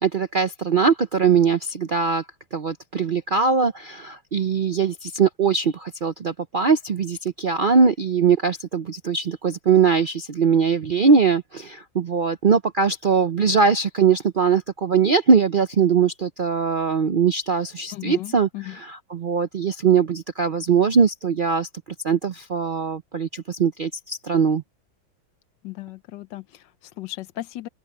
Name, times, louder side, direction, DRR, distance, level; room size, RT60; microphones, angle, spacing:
voice 1, 0.0-2.2 2.5-21.7 22.0-24.6, right 6 dB, 80° right, 0.4 m, -21 dB
voice 2, 17.9-18.7 25.6-27.7, left 16 dB, 75° left, 1.3 m, -36 dB
open air
omnidirectional pair, 2.0 m